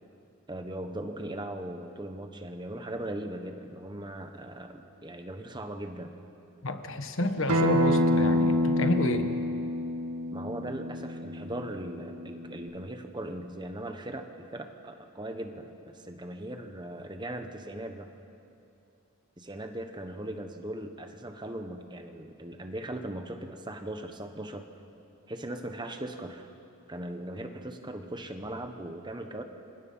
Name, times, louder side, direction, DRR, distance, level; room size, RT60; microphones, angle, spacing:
voice 1, 0.5-6.1 10.3-18.1 19.4-24.6 25.3-26.5 26.9-29.4, right 1 dB, 20° right, 6 dB, 1.3 m, -39 dB
voice 2, 6.6-9.3, left 1 dB, 60° left, 7 dB, 1.5 m, -30 dB
Acoustic guitar, 7.5-12.7, left 1 dB, 85° right, 1.9 m, -27 dB
30.0 x 25.0 x 5.7 m, 2.6 s
head